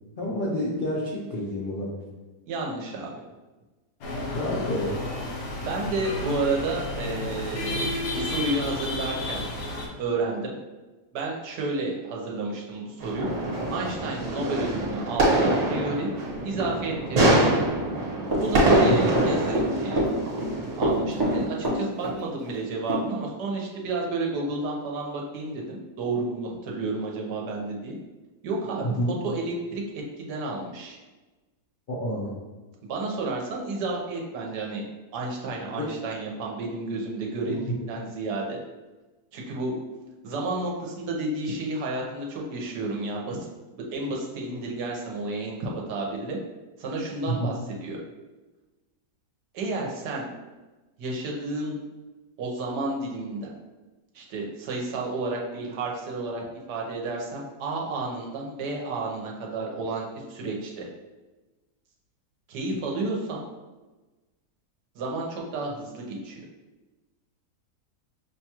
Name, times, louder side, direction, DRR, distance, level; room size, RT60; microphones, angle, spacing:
voice 1, 0.0-1.9 4.3-5.0 18.9-19.0 28.8-29.1 31.9-32.4 35.8-35.9 37.5-37.6 47.3-47.5, equal, 65° left, -5 dB, 0.5 m, -29 dB
voice 2, 2.5-3.1 5.5-7.9 8.1-9.4 10.0-10.6 11.1-13.3 13.7-16.1 16.4-17.7 18.4-20.0 20.8-28.0 28.4-28.9 29.2-31.0 32.8-34.8 35.1-38.6 39.3-39.7 40.2-43.4 43.7-46.4 46.8-47.5 47.8-48.0 49.5-50.3 51.0-51.8 52.4-53.5 54.1-60.9 62.5-63.5 64.9-66.4, right 2 dB, 85° right, -1 dB, 1.3 m, -31 dB
sound 1, 4.0-9.9, left 1 dB, 80° left, 1.5 m, -31 dB
sound 2, 13.0-21.5, right 1 dB, 50° right, 1.4 m, -25 dB
Run, 18.3-19.7 20.0-20.5 20.8-22.2 22.5-22.6 22.9-23.0, right 1 dB, 25° right, 0.5 m, -24 dB
5.7 x 2.3 x 2.9 m, 1.2 s
omnidirectional pair, 1.8 m